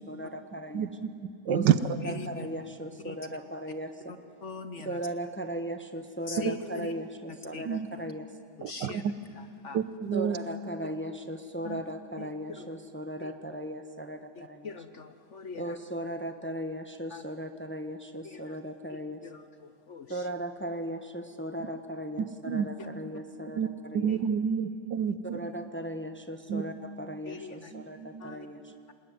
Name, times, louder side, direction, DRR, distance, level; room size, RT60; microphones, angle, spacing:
voice 1, 0.1-0.9 1.5-1.7 2.0-4.2 4.8-8.3 10.1-14.7 15.5-19.2 20.1-24.1 25.3-28.7, right 1 dB, 10° left, 7 dB, 0.8 m, -37 dB
voice 2, 0.7-1.1 1.5-1.7 6.4-6.6 7.6-7.9 8.6-9.1 9.7-10.4 22.2-22.7 23.6-25.4 26.5-26.6 27.7-28.3, right 8 dB, 80° right, 13 dB, 1.6 m, -29 dB
voice 3, 4.4-4.9 6.3-6.9 7.5-7.6 8.7-9.0 9.6-9.8 11.6-11.8 12.2-12.3 12.6-12.7 13.2-13.3 14.4-15.6 17.1-17.2 18.2-18.4 18.9-19.0 19.9-20.1 27.3-27.7 28.2-28.5, left 4 dB, 50° left, 9 dB, 1.0 m, -41 dB
28.0 x 19.5 x 9.5 m, 2.5 s
omnidirectional pair, 1.9 m